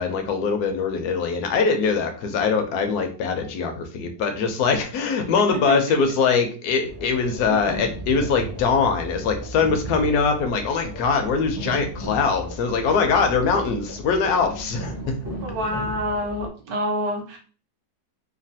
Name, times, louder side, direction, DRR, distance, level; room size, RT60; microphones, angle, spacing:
voice 1, 0.0-14.9, left 5 dB, 70° left, 5 dB, 1.1 m, -22 dB
voice 2, 5.5-6.0 7.5-7.7 15.4-17.4, right 1 dB, 65° right, 1 dB, 1.2 m, -28 dB
sound 1, 6.9-16.5, right 1 dB, 15° right, 0.5 m, -35 dB
3.1 x 2.3 x 2.7 m, 0.38 s
omnidirectional pair, 1.9 m